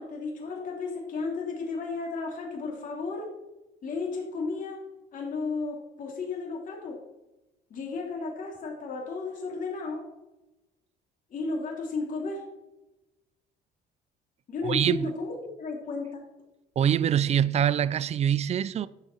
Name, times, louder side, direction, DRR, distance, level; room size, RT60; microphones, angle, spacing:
voice 1, 0.0-3.3 3.8-4.8 5.1-6.9 7.7-10.0 11.3-12.4 14.5-16.2, left 3 dB, 50° left, 3.3 m, -33 dB
voice 2, 14.6-15.1 16.8-18.9, right 9 dB, 40° right, 0.5 m, -24 dB
12.5 x 7.3 x 4.5 m
cardioid pair, 110°, 17 cm